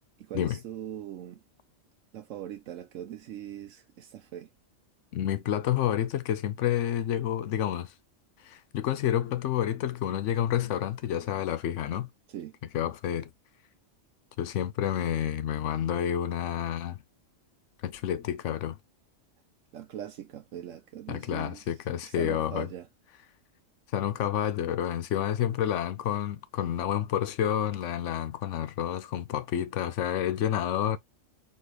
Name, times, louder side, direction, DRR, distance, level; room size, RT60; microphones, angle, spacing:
voice 1, 0.2-1.4 2.1-4.5 12.3-12.5 19.7-21.7 22.0-22.9, right 10 dB, 85° right, 1.0 m, -41 dB
voice 2, 5.1-7.9 8.4-12.1 12.7-13.3 14.4-17.0 17.8-18.8 21.1-22.7 23.9-31.0, left 10 dB, 75° left, 1.0 m, -29 dB
4.3 x 3.6 x 3.1 m
omnidirectional pair, 1.3 m